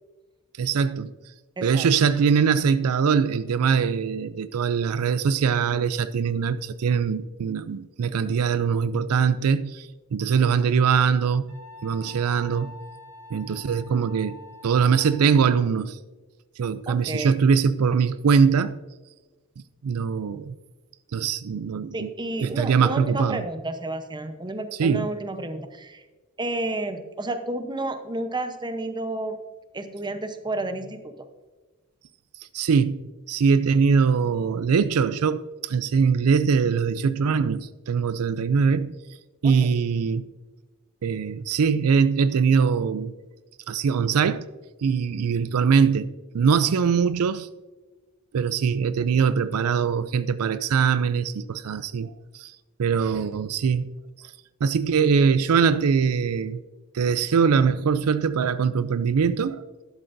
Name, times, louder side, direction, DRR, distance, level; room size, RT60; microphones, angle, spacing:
voice 1, 0.6-1.1 1.6-11.6 11.8-12.7 13.3-14.3 14.6-16.0 16.6-18.7 19.8-20.6 21.1-22.1 22.4-23.4 24.8-25.1 32.5-33.0 33.3-38.9 39.4-40.3 41.0-43.1 43.7-44.5 44.8-47.5 48.3-52.5 52.8-53.9 54.6-56.6 56.9-59.6, right 6 dB, 75° right, 0.4 m, -22 dB
voice 2, 1.6-1.9 16.9-17.4 21.9-26.0 26.4-29.4 29.7-31.1 39.4-39.7, right 2 dB, 20° right, 0.8 m, -31 dB
Wind instrument woodwind instrument, 11.5-15.6, left 2 dB, 50° right, 3.8 m, -46 dB
12.0 x 11.5 x 2.6 m
head